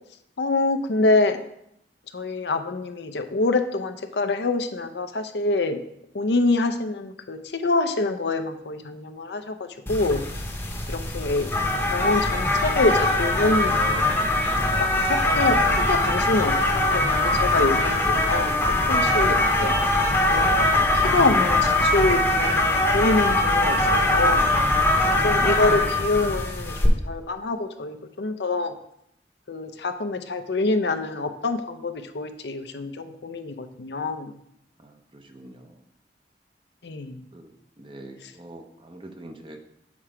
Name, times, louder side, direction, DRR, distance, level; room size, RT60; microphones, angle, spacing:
voice 1, 0.4-1.4 2.1-5.8 6.1-10.2 10.9-11.5 11.9-14.1 14.7-18.6 18.9-19.8 20.3-24.5 25.2-28.7 29.5-34.3 36.8-37.2, left 2 dB, 75° left, 8 dB, 0.6 m, -26 dB
sound 1, 9.9-26.9, left 2 dB, 10° left, 0.9 m, -22 dB
voice 2, 34.8-35.8 37.3-37.5 37.8-39.6, right 1 dB, 30° right, 5 dB, 0.7 m, -45 dB
7.3 x 4.5 x 4.9 m, 0.75 s
head